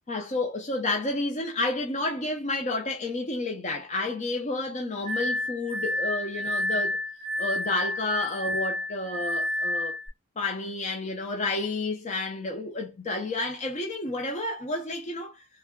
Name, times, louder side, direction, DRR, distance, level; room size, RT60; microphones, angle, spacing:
voice 1, 0.1-7.0 7.4-10.0 10.4-15.5, left 2 dB, 30° left, 0.5 m, -30 dB
Glass, 5.0-10.1, left 1 dB, 70° left, 2.1 m, -30 dB
3.3 x 2.2 x 3.6 m
head